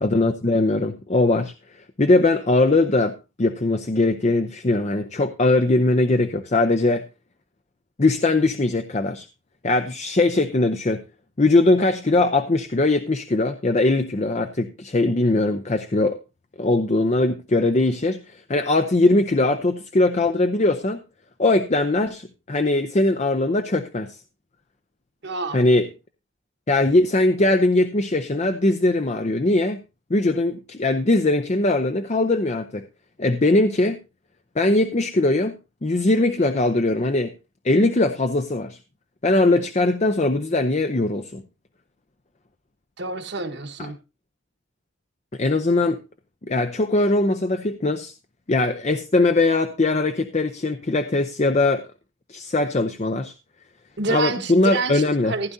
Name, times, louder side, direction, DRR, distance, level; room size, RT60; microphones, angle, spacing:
voice 1, 0.0-1.5 2.0-7.0 8.0-9.3 9.6-11.0 11.4-16.2 16.6-21.0 21.4-24.2 25.5-25.9 26.7-29.8 30.1-32.8 33.2-34.0 34.6-35.5 35.8-37.3 37.6-38.8 39.2-41.4 45.3-46.0 46.5-48.1 48.5-51.8 52.3-53.3 54.1-55.3, left 2 dB, 35° left, 8 dB, 0.6 m, -20 dB
voice 2, 25.2-25.7 43.0-44.0 54.0-55.5, right 3 dB, 55° right, 8 dB, 1.5 m, -28 dB
15.5 x 10.5 x 2.7 m, 0.27 s
head